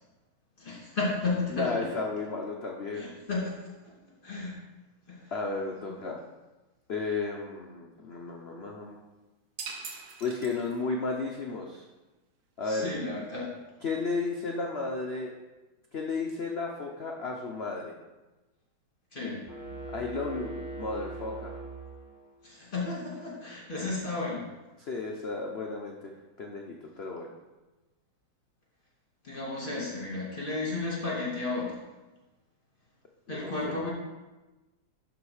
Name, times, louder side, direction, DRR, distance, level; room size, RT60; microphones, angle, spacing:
voice 1, 0.6-1.9 2.9-3.6 3.8-3.9 4.2-4.6 5.1-5.3 5.9-6.1 12.7-13.5 19.1-19.4 22.4-24.4 29.2-31.8 33.3-33.9, left 3 dB, 25° left, -5 dB, 2.2 m, -33 dB
voice 2, 1.5-3.1 5.3-6.2 6.9-9.0 10.2-11.9 12.6-12.9 13.8-15.3 15.9-17.9 19.9-21.6 24.9-26.1 26.4-27.3 33.3-33.8, left 3 dB, 65° left, 0 dB, 0.6 m, -33 dB
sound 1, 9.6-11.1, right 5 dB, 75° right, 1.6 m, -42 dB
sound 2, 19.5-22.4, right 2 dB, 10° right, 1.1 m, -40 dB
11.5 x 3.9 x 4.8 m, 1.1 s
omnidirectional pair, 2.1 m